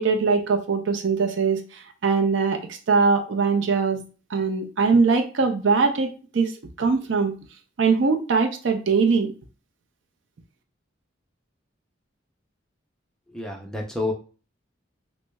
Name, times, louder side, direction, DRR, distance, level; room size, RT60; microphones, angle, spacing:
voice 1, 0.0-4.0 4.3-6.5 6.8-7.3 7.8-9.3, right 4 dB, 70° right, 5 dB, 0.5 m, -22 dB
voice 2, 13.3-14.1, left 2 dB, 5° left, 1 dB, 0.5 m, -29 dB
6.0 x 2.1 x 2.2 m, 0.36 s
head